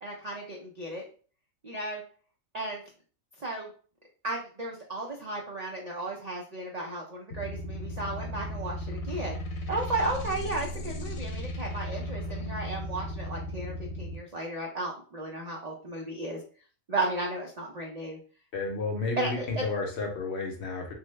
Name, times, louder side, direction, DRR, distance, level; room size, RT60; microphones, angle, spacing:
voice 1, 0.0-1.0 1.6-2.0 2.5-2.8 3.4-3.7 4.2-16.4 16.9-18.2 19.2-19.6, right 2 dB, 65° right, -1 dB, 0.4 m, -34 dB
sound 1, 7.3-14.2, equal, 85° left, 1.1 m, -36 dB
voice 2, 18.5-20.9, left 3 dB, 60° left, 2 dB, 0.9 m, -32 dB
3.3 x 2.1 x 3.2 m, 0.41 s
omnidirectional pair, 1.4 m